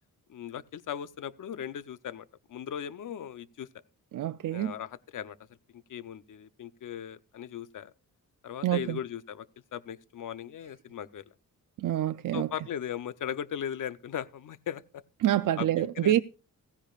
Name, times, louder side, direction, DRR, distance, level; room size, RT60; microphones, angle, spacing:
voice 1, 0.3-3.7 4.5-5.4 5.7-7.9 8.4-9.5 9.7-11.2 12.3-15.0 15.6-16.2, left 9 dB, 60° left, 0.7 m, -38 dB
voice 2, 4.1-4.7 8.6-9.0 11.8-12.5 15.2-16.2, right 12 dB, 65° right, 0.5 m, -26 dB
16.0 x 15.5 x 2.4 m
wide cardioid pair, 160°, 35 cm